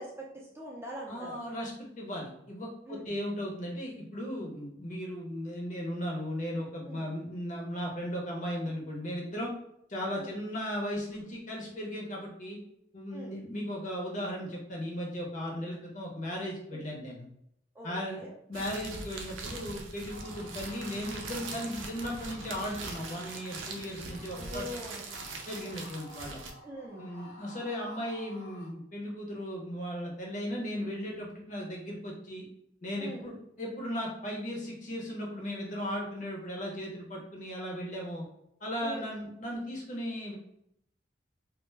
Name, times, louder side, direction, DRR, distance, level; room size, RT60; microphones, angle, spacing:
voice 1, 0.0-1.4 2.9-3.1 6.9-7.1 10.2-10.3 13.1-13.3 16.7-16.8 17.8-18.3 18.6-18.7 24.3-25.0 26.6-27.1 33.0-33.3 38.8-39.1, equal, 15° right, -3 dB, 0.4 m, -43 dB
voice 2, 1.0-9.5 9.9-12.6 12.9-17.2 17.8-18.2 18.5-24.8 25.5-26.4 27.0-32.5 32.8-38.2 38.6-40.4, equal, 40° left, -2 dB, 0.6 m, -36 dB
sound 1, 18.5-26.5, right 3 dB, 90° right, 0.4 m, -42 dB
sound 2, 20.1-28.7, left 2 dB, 65° left, 0.9 m, -52 dB
2.1 x 2.0 x 3.1 m, 0.76 s
head